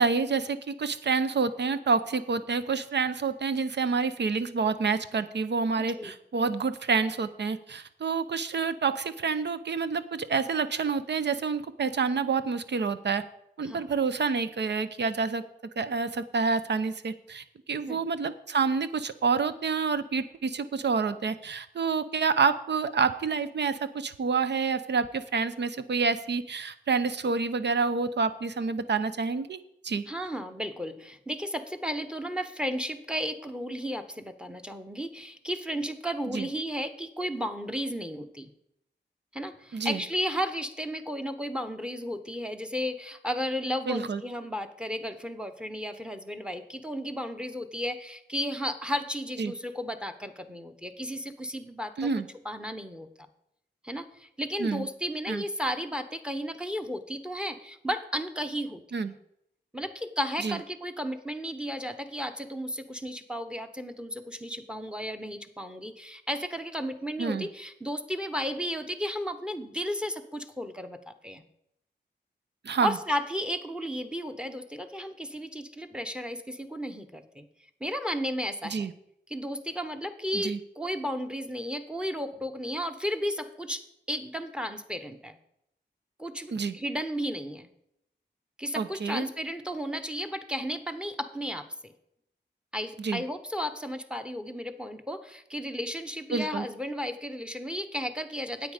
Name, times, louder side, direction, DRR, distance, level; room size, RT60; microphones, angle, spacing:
voice 1, 0.0-13.2 13.6-15.4 15.8-29.6 29.8-30.0 36.3-36.5 39.7-40.0 43.9-44.2 49.4-49.5 52.0-52.3 54.6-54.9 55.3-55.4 58.9-59.1 60.4-60.6 67.2-67.5 72.6-73.0 78.6-78.9 80.3-80.6 86.5-86.8 88.8-89.2 93.0-93.2 96.3-96.7, right 5 dB, 70° right, 12 dB, 0.7 m, -28 dB
voice 2, 5.8-6.1 13.6-13.9 17.9-18.0 30.1-38.5 39.3-52.1 52.4-53.1 53.8-59.1 59.7-71.4 72.8-77.5 77.8-78.9 79.3-85.4 86.2-87.7 88.6-91.7 92.7-98.7, equal, 5° right, 9 dB, 1.1 m, -34 dB
9.3 x 8.4 x 5.1 m, 0.77 s
cardioid pair, 65°, 18 cm